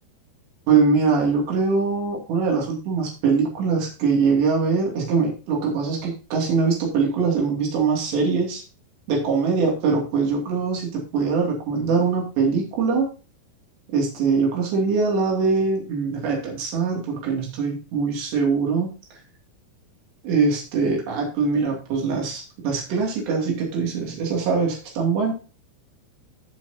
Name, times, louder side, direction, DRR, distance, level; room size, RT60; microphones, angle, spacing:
voice 1, 0.7-8.6 9.1-13.1 13.9-18.9 20.2-25.3, right 5 dB, 90° right, -1 dB, 4.7 m, -22 dB
15.5 x 6.2 x 2.8 m, 0.33 s
omnidirectional pair, 4.8 m